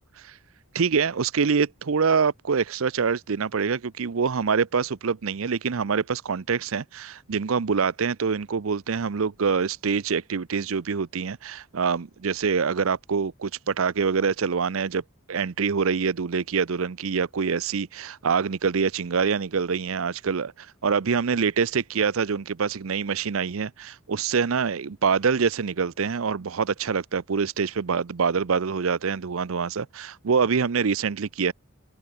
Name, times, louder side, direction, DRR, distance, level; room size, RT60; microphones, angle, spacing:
voice 1, 0.7-15.0 15.3-31.5, right 5 dB, 70° right, 0.6 m, -25 dB
open air
head